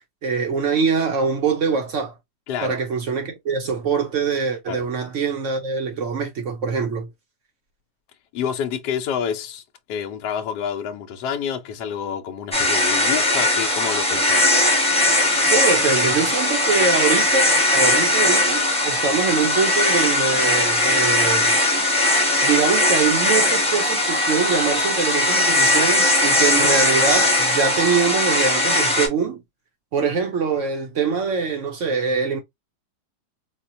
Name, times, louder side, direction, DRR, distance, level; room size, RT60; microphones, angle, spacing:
voice 1, 0.2-2.1 2.6-7.1 15.5-21.6 22.4-29.4 29.9-32.4, right 5 dB, 60° right, 0.9 m, -23 dB
voice 2, 2.5-2.8 4.7-4.9 8.3-9.6 9.9-14.5, left 8 dB, 80° left, 1.2 m, -28 dB
sound 1, 12.5-29.1, left 1 dB, 5° left, 0.9 m, -19 dB
4.3 x 2.2 x 2.6 m
omnidirectional pair, 1.8 m